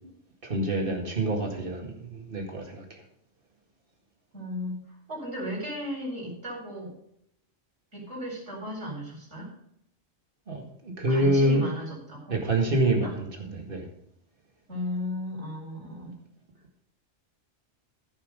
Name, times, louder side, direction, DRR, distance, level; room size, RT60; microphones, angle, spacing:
voice 1, 0.4-3.0 10.5-11.6 12.3-13.9, right 1 dB, 45° right, 1 dB, 2.2 m, -27 dB
voice 2, 4.3-6.9 7.9-9.5 11.1-12.4 12.8-13.1 14.7-16.2, left 1 dB, 60° right, -2 dB, 4.6 m, -35 dB
14.5 x 5.7 x 5.2 m, 0.73 s
omnidirectional pair, 1.3 m